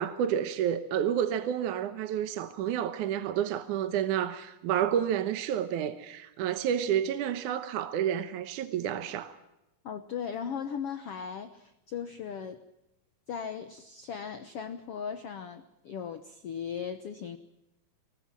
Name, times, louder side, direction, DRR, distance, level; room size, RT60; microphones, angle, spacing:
voice 1, 0.0-9.4, right 9 dB, 70° right, 2.2 m, -30 dB
voice 2, 9.8-12.6 13.3-17.4, left 7 dB, 90° left, 1.3 m, -38 dB
24.5 x 20.5 x 7.6 m
omnidirectional pair, 4.3 m